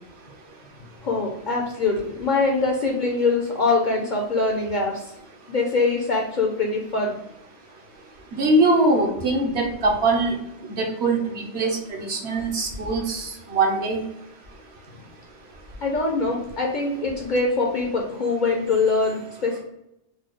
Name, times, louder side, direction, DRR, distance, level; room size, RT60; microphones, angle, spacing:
voice 1, 1.0-5.1 5.5-7.2 15.8-19.6, left 3 dB, 50° left, 0 dB, 0.6 m, -23 dB
voice 2, 8.3-10.4 10.7-14.0, right 2 dB, 65° right, 0 dB, 1.0 m, -22 dB
4.2 x 2.2 x 3.1 m, 0.82 s
omnidirectional pair, 1.2 m